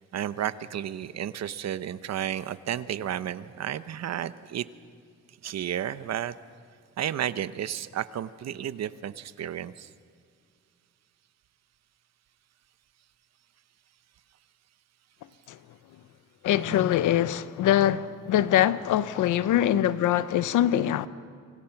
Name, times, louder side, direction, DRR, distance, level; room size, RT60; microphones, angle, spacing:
voice 1, 0.1-4.6 5.4-6.3 7.0-9.9 16.7-16.9, right 10 dB, 60° right, 1.0 m, -32 dB
voice 2, 16.4-21.1, left 12 dB, 80° left, 1.0 m, -23 dB
28.0 x 26.0 x 6.0 m
cardioid pair, 90°, 30 cm